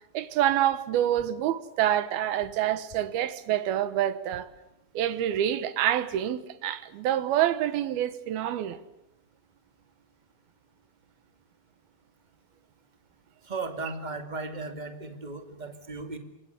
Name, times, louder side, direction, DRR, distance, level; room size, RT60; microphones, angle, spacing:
voice 1, 0.1-4.5 4.9-8.8, right 11 dB, 75° right, 3.0 m, -27 dB
voice 2, 13.5-16.2, right 3 dB, 15° right, 1.6 m, -36 dB
26.5 x 22.5 x 8.2 m
omnidirectional pair, 4.6 m